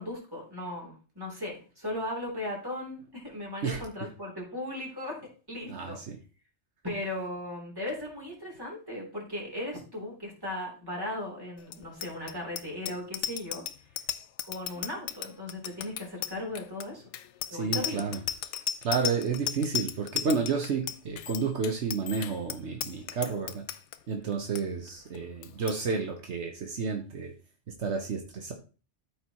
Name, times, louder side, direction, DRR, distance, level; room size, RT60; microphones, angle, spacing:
voice 1, 0.0-6.0 6.8-13.6 14.5-17.0 17.5-18.1, left 1 dB, 20° right, -2 dB, 3.2 m, -37 dB
voice 2, 5.7-6.2 17.5-18.2 18.8-23.6 24.1-27.3 27.8-28.5, right 5 dB, 75° right, 3 dB, 1.3 m, -31 dB
Bicycle bell, 11.7-24.0 24.3-24.6 24.9-25.2 25.4-25.8, left 10 dB, 85° left, 0.9 m, -35 dB
13.0 x 4.5 x 2.9 m, 0.35 s
omnidirectional pair, 1.2 m